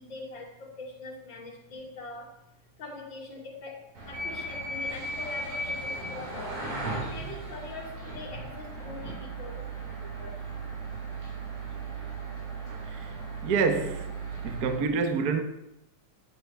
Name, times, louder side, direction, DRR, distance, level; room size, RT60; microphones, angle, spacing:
voice 1, 0.0-2.4 2.8-6.6 6.9-10.4, left 3 dB, 40° left, 3.6 m, -43 dB
sound 1, 4.0-14.8, right 2 dB, 85° right, 5.4 m, -36 dB
voice 2, 12.7-13.1 13.4-14.1 14.4-15.4, right 5 dB, 55° right, 1.0 m, -28 dB
11.5 x 9.7 x 9.5 m
omnidirectional pair, 3.4 m